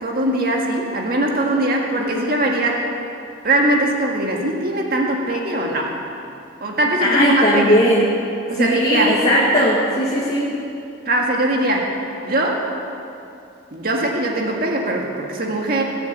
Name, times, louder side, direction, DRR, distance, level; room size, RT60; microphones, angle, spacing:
voice 1, 0.0-2.8 3.4-6.0 6.6-7.8 8.5-9.2 11.1-12.7 13.7-15.8, right 1 dB, 45° right, 0 dB, 1.8 m, -21 dB
voice 2, 7.0-8.1 8.5-10.5, equal, 30° left, -5 dB, 1.6 m, -17 dB
18.5 x 7.0 x 8.2 m, 2.7 s
head